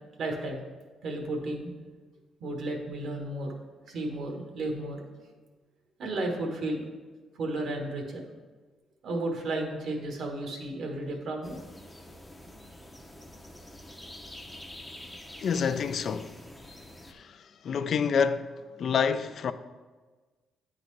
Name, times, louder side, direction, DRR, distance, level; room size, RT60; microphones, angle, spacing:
voice 1, 0.2-0.6 1.0-1.7 2.4-3.5 3.9-5.1 6.0-6.8 7.3-8.2 9.0-11.6, right 2 dB, 65° right, 1.2 m, -33 dB
sound 1, 11.4-17.1, left 1 dB, 10° left, 0.6 m, -47 dB
voice 2, 15.4-16.3 17.1-18.5 18.8-19.5, left 6 dB, 60° left, 0.3 m, -28 dB
9.3 x 3.9 x 3.2 m
cardioid pair, 90°, 0 cm